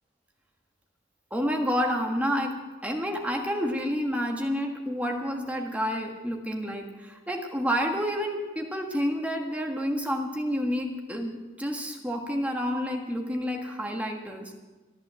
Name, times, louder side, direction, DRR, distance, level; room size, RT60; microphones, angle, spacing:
voice 1, 1.3-2.5 2.8-14.5, equal, 10° right, 1 dB, 1.5 m, -29 dB
14.0 x 11.0 x 7.6 m, 1.2 s
head